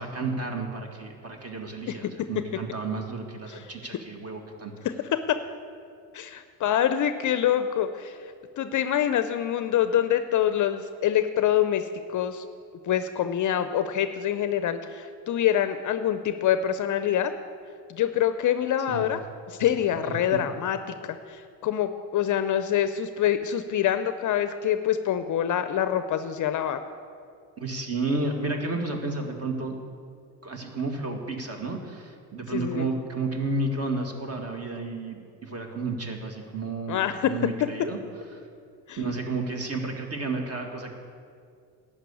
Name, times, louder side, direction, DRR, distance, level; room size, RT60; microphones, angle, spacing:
voice 1, 0.0-4.7 18.9-19.1 27.6-29.8 30.4-38.0 38.3-38.4 39.0-40.9, right 3 dB, 30° right, 3 dB, 1.8 m, -31 dB
voice 2, 4.8-5.4 6.1-12.5 12.8-17.3 17.9-19.2 19.5-26.8 32.5-32.9 36.9-37.3 38.9-39.0, left 10 dB, 40° left, 10 dB, 0.6 m, -26 dB
11.5 x 5.5 x 8.4 m, 2.3 s
hypercardioid pair, 75°, 46 cm